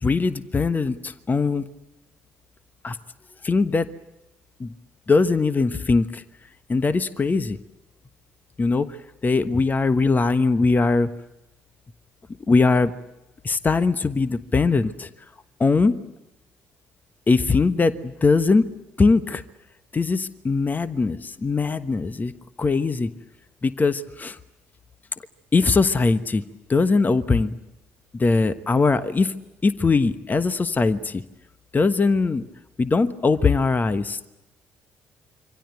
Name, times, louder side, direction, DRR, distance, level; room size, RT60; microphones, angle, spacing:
voice 1, 0.0-1.6 2.8-3.0 3.4-3.9 4.6-4.7 5.1-6.2 6.7-7.6 8.6-8.9 9.2-11.1 12.5-12.9 13.4-15.1 15.6-16.0 17.3-18.7 19.0-19.4 19.9-22.3 22.6-23.1 23.6-24.4 25.5-26.4 26.7-27.6 28.1-29.3 29.6-31.2 31.7-32.4 32.8-34.2, left 4 dB, 25° left, 13 dB, 1.2 m, -21 dB
27.0 x 25.5 x 7.9 m, 0.98 s
figure-of-eight pair, 45°, 7 cm